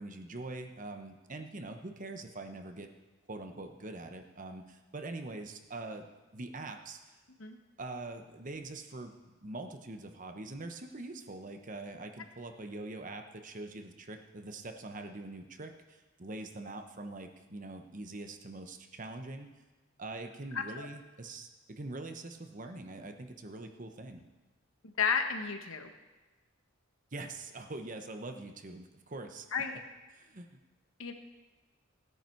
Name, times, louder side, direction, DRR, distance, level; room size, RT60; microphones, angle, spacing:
voice 1, 0.0-2.9 3.3-6.1 6.3-7.1 7.8-9.1 9.4-19.5 20.0-24.2 27.1-29.5 30.1-30.6, right 2 dB, 40° right, 6 dB, 1.0 m, -43 dB
voice 2, 20.5-20.9 25.0-25.9 29.5-29.8 31.0-31.1, left 6 dB, 85° left, 6 dB, 1.3 m, -32 dB
16.5 x 9.9 x 4.6 m, 1.2 s
head